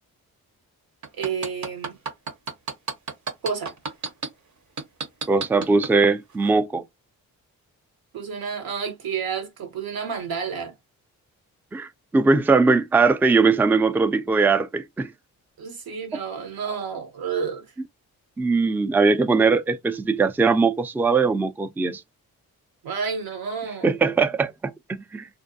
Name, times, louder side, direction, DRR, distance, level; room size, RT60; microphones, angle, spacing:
sound 1, 1.0-4.3 4.8-5.9 6.4-6.5, right 4 dB, 50° right, 0.8 m, -30 dB
voice 1, 1.2-2.0 3.4-3.7 8.1-10.7 15.6-17.7 22.8-23.9, right 6 dB, 75° right, 1.0 m, -30 dB
voice 2, 5.3-6.8 11.7-15.1 18.4-22.0 23.8-25.3, right 4 dB, 5° right, 0.3 m, -20 dB
2.5 x 2.1 x 2.6 m
supercardioid pair, 50°, 37 cm